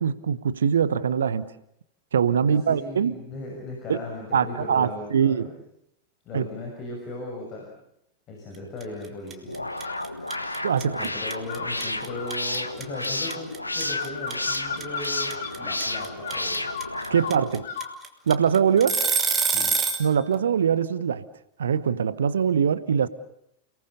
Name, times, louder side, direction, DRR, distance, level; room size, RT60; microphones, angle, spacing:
voice 1, 0.0-1.5 2.1-3.1 3.9-4.0 4.3-5.5 6.3-6.5 10.6-11.1 17.1-17.6 18.3-19.0 20.0-21.2 21.6-23.1, right 7 dB, 65° right, 17 dB, 1.0 m, -22 dB
voice 2, 2.4-5.5 6.2-7.7 8.3-9.7 10.8-16.7 17.2-17.4 19.4-19.7, left 2 dB, 35° left, 0 dB, 6.4 m, -37 dB
sound 1, 8.8-9.0 9.3-20.1, right 5 dB, 20° right, 3.0 m, -25 dB
sound 2, 9.5-17.7, left 2 dB, 85° left, 1.6 m, -32 dB
sound 3, 9.8-10.5 11.5-18.0, left 5 dB, 60° left, 3.0 m, -36 dB
29.5 x 19.5 x 6.8 m, 0.79 s
figure-of-eight pair, 90°, 0 cm